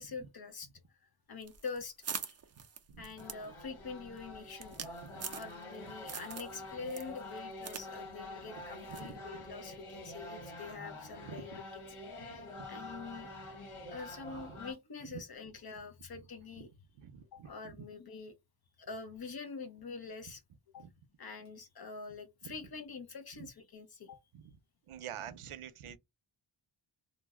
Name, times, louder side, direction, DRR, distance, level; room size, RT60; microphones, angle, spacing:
voice 1, 0.0-2.4 3.0-5.0 5.3-11.6 12.7-13.3 13.9-16.7 17.3-18.3 18.8-20.4 20.7-20.9 21.2-24.2, left 4 dB, 50° left, 0.7 m, -45 dB
sound 1, 1.4-5.8 6.1-6.6 6.9-7.9 8.1-8.2 8.9-9.1, right 6 dB, 35° right, 0.4 m, -43 dB
sound 2, 3.2-14.7, left 1 dB, 85° left, 1.3 m, -47 dB
voice 2, 11.2-11.6 14.3-14.4 17.0-17.8 20.8-20.9 22.4-22.5 24.3-24.5 24.9-26.0, right 9 dB, 90° right, 0.6 m, -47 dB
2.5 x 2.0 x 3.5 m
wide cardioid pair, 115°, 49 cm